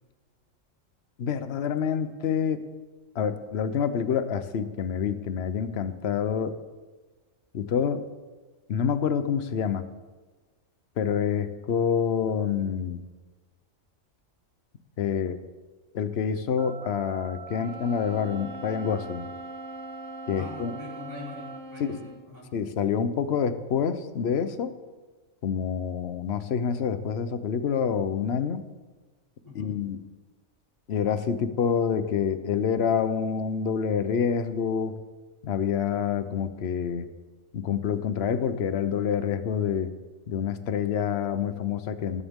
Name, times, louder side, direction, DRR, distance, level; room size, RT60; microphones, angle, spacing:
voice 1, 1.2-2.6 3.1-6.6 7.5-8.0 8.7-9.8 11.0-13.0 15.0-15.4 15.9-19.3 20.3-20.7 21.8-22.0 22.5-24.7 25.4-28.6 29.5-30.0 30.9-35.0 35.4-37.1 37.5-39.9 40.3-42.2, left 7 dB, 55° left, 11 dB, 1.0 m, -27 dB
sound 1, 16.6-21.6, right 8 dB, 90° right, 1.1 m, -43 dB
sound 2, 17.5-22.3, left 1 dB, 60° right, 2.6 m, -43 dB
voice 2, 20.4-22.5 29.4-29.7, left 3 dB, 15° left, -8 dB, 4.2 m, -43 dB
20.0 x 11.0 x 3.7 m, 1.3 s
omnidirectional pair, 1.4 m